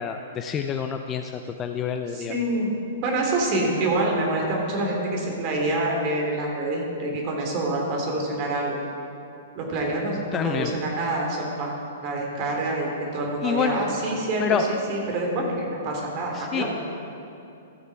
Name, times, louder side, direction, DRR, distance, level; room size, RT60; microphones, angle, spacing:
voice 1, 0.0-2.3 10.3-10.7 13.4-13.8 14.4-14.7 16.3-16.6, left 8 dB, 25° left, 6 dB, 0.5 m, -27 dB
voice 2, 2.1-2.7 3.0-8.8 9.5-11.7 12.0-16.6, right 2 dB, 40° right, -1 dB, 2.9 m, -26 dB
14.5 x 6.7 x 4.7 m, 2.8 s
hypercardioid pair, 120°, 0 cm